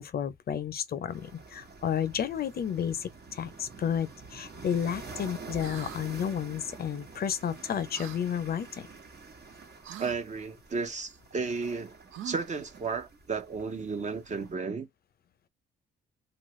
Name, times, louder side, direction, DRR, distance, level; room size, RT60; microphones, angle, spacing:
voice 1, 0.0-8.9, left 8 dB, 50° left, 0.5 m, -32 dB
sound 1, 1.1-14.5, right 4 dB, 55° right, 1.2 m, -48 dB
sound 2, 5.6-6.0 7.9-8.2 9.8-10.2 12.1-12.6, right 11 dB, 80° right, 0.4 m, -43 dB
voice 2, 10.0-11.9 12.2-14.9, right 4 dB, 35° right, 0.7 m, -33 dB
2.9 x 2.4 x 3.0 m
cardioid pair, 90°, 20 cm